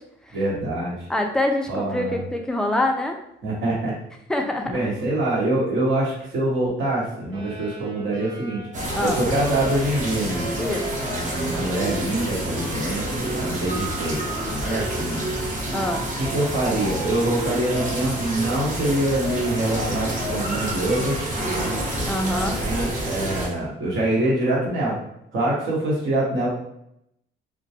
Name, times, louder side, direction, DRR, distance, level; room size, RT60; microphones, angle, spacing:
voice 1, 0.3-1.0 1.7-2.2 3.4-3.9 4.7-8.6 9.0-10.5 11.1-15.2 16.2-21.2 22.5-25.0 25.3-26.5, right 1 dB, 75° right, -4 dB, 1.0 m, -25 dB
voice 2, 1.1-3.2 4.3-4.7 8.9-9.2 10.6-10.8 15.7-16.0 22.1-22.6, left 1 dB, 5° left, 3 dB, 0.3 m, -25 dB
sound 1, 7.3-15.3, right 1 dB, 25° right, 1.0 m, -38 dB
sound 2, 8.7-23.5, right 1 dB, 40° right, 0.7 m, -28 dB
2.2 x 2.2 x 2.7 m, 0.78 s
cardioid pair, 90°, 20 cm